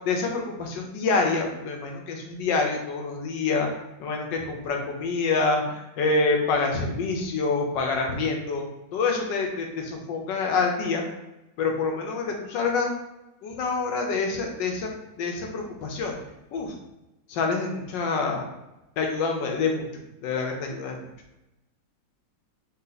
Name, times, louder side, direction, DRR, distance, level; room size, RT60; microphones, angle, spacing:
voice 1, 0.0-3.7 4.0-11.0 11.6-12.9 13.4-14.9 15.2-16.2 16.5-16.7 17.3-18.5 19.0-19.9 20.2-21.1, left 4 dB, 80° left, 2 dB, 1.4 m, -26 dB
3.7 x 2.8 x 3.9 m, 0.95 s
omnidirectional pair, 2.0 m